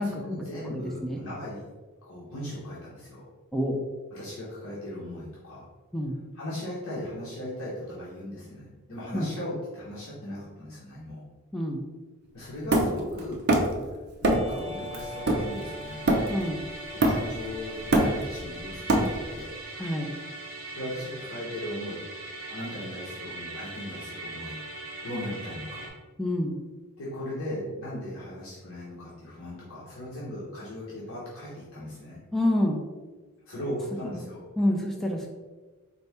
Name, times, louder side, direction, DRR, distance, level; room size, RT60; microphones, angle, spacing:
voice 1, 0.0-1.7 2.0-3.2 4.1-5.6 6.3-11.2 12.3-13.4 14.2-16.1 16.9-19.6 20.7-22.0 22.5-24.6 25.0-25.9 27.0-32.2 33.5-34.4, left 1 dB, 65° left, -7 dB, 1.0 m, -37 dB
voice 2, 0.7-1.2 3.5-3.8 5.9-6.2 9.1-9.3 11.5-11.8 16.3-16.6 19.8-20.1 26.2-26.5 32.3-32.8 34.1-34.2 34.6-35.3, left 1 dB, ahead, 0 dB, 0.4 m, -27 dB
Hammer, 12.7-13.8 14.2-14.6 14.9-16.5 17.0-17.5 17.7-19.4, right 1 dB, 45° right, 0.6 m, -24 dB
Musical instrument, 14.2-25.9, right 1 dB, 60° right, 1.4 m, -40 dB
4.1 x 2.7 x 3.4 m, 1.3 s
head